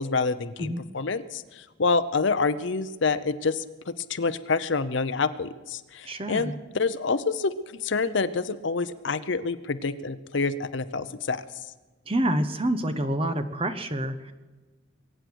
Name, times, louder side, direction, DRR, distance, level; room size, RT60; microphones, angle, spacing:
voice 1, 0.0-7.5 7.8-11.4, left 4 dB, 60° left, 13 dB, 0.7 m, -27 dB
voice 2, 6.1-6.5 12.1-14.3, right 1 dB, 25° right, 9 dB, 1.0 m, -27 dB
23.0 x 9.2 x 6.2 m, 1.2 s
head